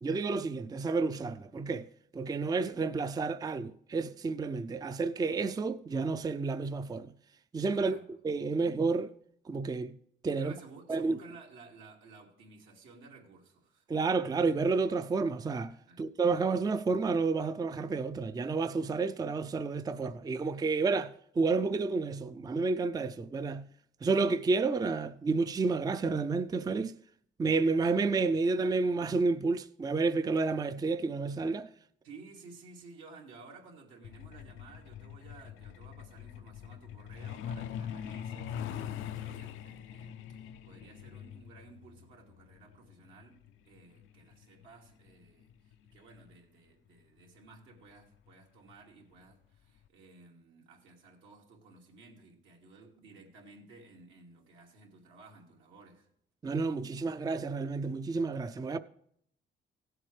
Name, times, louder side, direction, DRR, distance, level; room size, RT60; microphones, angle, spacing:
voice 1, 0.0-1.9 2.1-7.1 7.5-8.0 8.2-9.1 9.5-10.0 10.2-10.5 10.9-11.2 13.9-23.7 24.0-26.9 27.4-31.7 56.4-58.8, right 4 dB, 20° right, 0.4 m, -30 dB
voice 2, 7.7-8.2 8.5-8.7 10.3-13.9 15.9-16.2 32.0-56.1, right 3 dB, 85° right, 2.5 m, -55 dB
Truck, 34.0-46.3 47.6-47.7 48.1-48.3 48.7-49.0 49.3-49.4 49.8-49.9, left 9 dB, 85° left, 0.5 m, -43 dB
16.0 x 7.7 x 3.2 m
cardioid pair, 90°, 20 cm